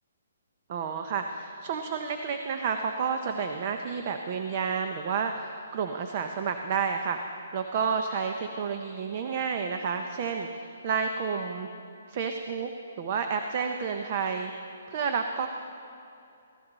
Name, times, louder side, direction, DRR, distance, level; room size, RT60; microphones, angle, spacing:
voice 1, 0.7-7.2 7.5-11.7 12.1-12.7 13.0-14.5 14.9-15.5, right 6 dB, 30° right, 6 dB, 0.6 m, -30 dB
17.5 x 15.0 x 4.0 m, 2.6 s
hypercardioid pair, 175°, 0 cm